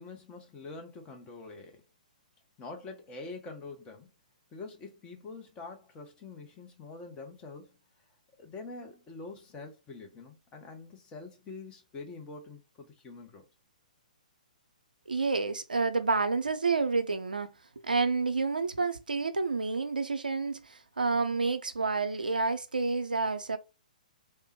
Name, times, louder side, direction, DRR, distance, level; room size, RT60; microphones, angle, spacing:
voice 1, 0.0-1.8 2.6-4.1 4.5-7.8 8.4-13.5 21.2-21.4, left 3 dB, 20° left, 0.8 m, -45 dB
voice 2, 15.1-17.5 17.8-23.6, right 4 dB, 90° right, 0.5 m, -29 dB
3.3 x 2.1 x 2.9 m
figure-of-eight pair, 125°, 5 cm